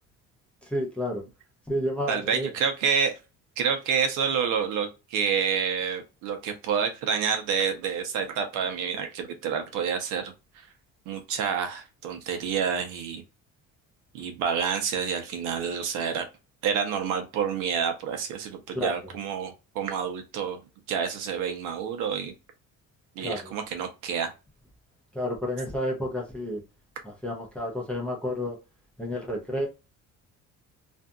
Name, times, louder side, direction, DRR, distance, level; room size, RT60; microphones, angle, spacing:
voice 1, 0.6-1.2 1.7-2.5 18.7-19.0 23.2-23.5 25.1-26.6 27.0-28.6 29.0-29.7, left 1 dB, 5° left, 0.6 m, -30 dB
voice 2, 2.1-3.1 3.6-10.7 11.1-13.2 14.1-16.3 16.6-20.6 20.9-22.3 23.1-24.3, right 7 dB, 90° right, 0.9 m, -28 dB
2.7 x 2.5 x 2.3 m
cardioid pair, 175°, 30 cm